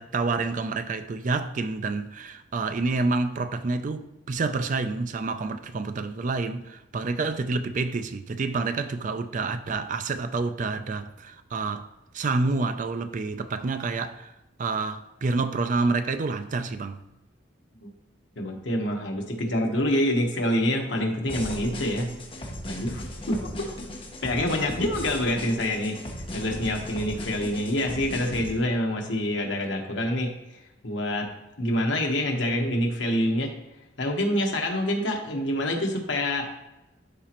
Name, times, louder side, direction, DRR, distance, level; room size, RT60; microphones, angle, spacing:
voice 1, 0.0-11.9 12.1-17.0, right 3 dB, 45° right, 0.4 m, -28 dB
voice 2, 18.4-22.1 22.7-23.4 24.2-26.0 26.3-31.3 31.6-33.5 34.0-36.5, left 1 dB, 70° left, 1.2 m, -26 dB
sound 1, 21.3-28.5, left 1 dB, 30° left, 1.2 m, -37 dB
12.0 x 4.2 x 3.0 m
head